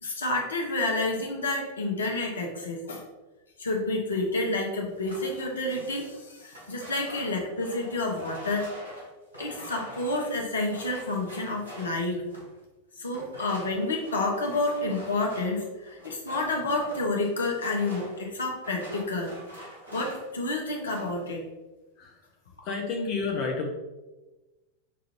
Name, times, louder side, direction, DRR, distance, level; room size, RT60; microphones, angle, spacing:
voice 1, 0.0-3.0 3.6-8.7 9.4-12.2 13.0-19.3 19.9-21.4, left 2 dB, 70° left, 1 dB, 0.8 m, -29 dB
sound 1, 4.9-12.6 13.1-20.4 20.7-21.2, right 1 dB, 80° right, 1.2 m, -46 dB
voice 2, 22.0-22.3 22.6-23.7, left 4 dB, 40° left, 0 dB, 0.6 m, -30 dB
5.8 x 2.5 x 3.0 m, 1.1 s
figure-of-eight pair, 90°, 0 cm